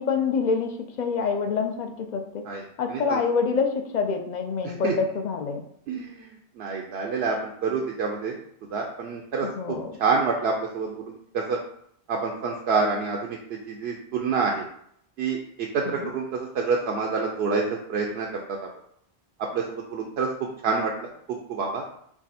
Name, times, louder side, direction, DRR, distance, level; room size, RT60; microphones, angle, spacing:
voice 1, 0.0-2.4 2.8-5.6 9.4-9.9 15.8-16.1, left 5 dB, 55° left, 4 dB, 0.6 m, -26 dB
voice 2, 2.9-3.2 4.8-4.9 5.9-6.1 6.6-7.4 7.6-8.3 8.7-9.5 10.0-11.6 12.1-13.4 13.7-14.6 15.2-16.2 16.5-17.6 17.9-18.4 19.5-20.3 20.6-20.9 21.5-22.0, right 4 dB, 80° right, 0 dB, 0.8 m, -27 dB
4.6 x 2.2 x 4.1 m, 0.69 s
omnidirectional pair, 1.0 m